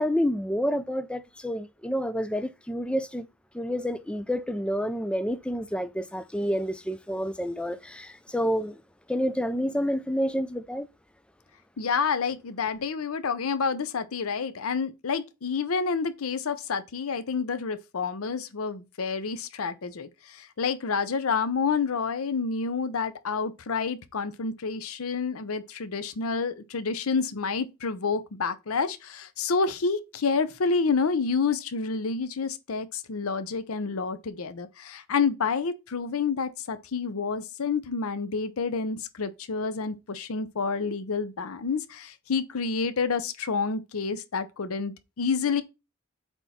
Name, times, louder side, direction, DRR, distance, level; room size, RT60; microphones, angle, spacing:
voice 1, 0.0-3.3 3.5-8.8 9.1-10.9, equal, 5° left, 0.4 m, -29 dB
voice 2, 11.8-45.6, left 5 dB, 85° left, 0.7 m, -29 dB
8.1 x 3.5 x 4.2 m
head